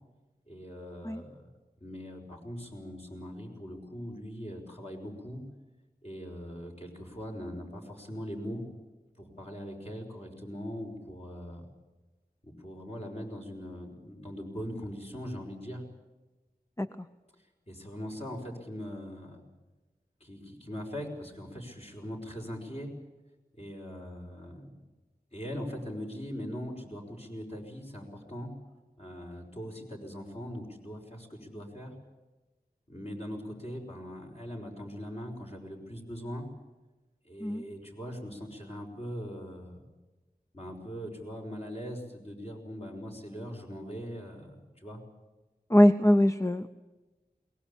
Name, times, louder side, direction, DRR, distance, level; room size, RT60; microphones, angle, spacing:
voice 1, 0.5-1.5 1.8-5.4 6.0-8.6 9.2-11.7 12.4-15.8 17.7-19.4 20.2-22.9 23.6-24.7 25.3-28.5 29.0-31.9 32.9-36.5 37.2-39.8 40.5-45.0, equal, 40° left, 1 dB, 5.4 m, -41 dB
voice 2, 45.7-46.7, left 1 dB, 20° left, 9 dB, 0.7 m, -22 dB
22.5 x 19.5 x 8.5 m, 1.2 s
wide cardioid pair, 50°, 16 cm